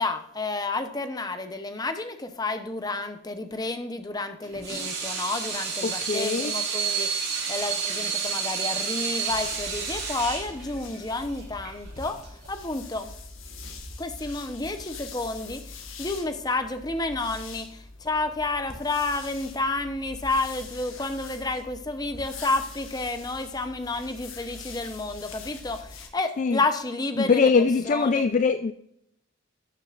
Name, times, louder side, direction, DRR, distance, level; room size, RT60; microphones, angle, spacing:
voice 1, 0.0-12.2 12.5-13.1 14.0-15.6 16.0-27.5 27.9-28.2, left 3 dB, 20° left, 8 dB, 0.8 m, -30 dB
Water tap faucet / Sink (filling or washing), 4.4-12.5, right 6 dB, 50° right, 3.3 m, -30 dB
voice 2, 5.8-6.5 26.4-26.6 27.2-28.7, left 5 dB, 40° left, 10 dB, 0.3 m, -22 dB
sound 1, 9.3-26.1, left 3 dB, 90° left, 1.6 m, -43 dB
12.5 x 6.8 x 2.5 m, 0.74 s
head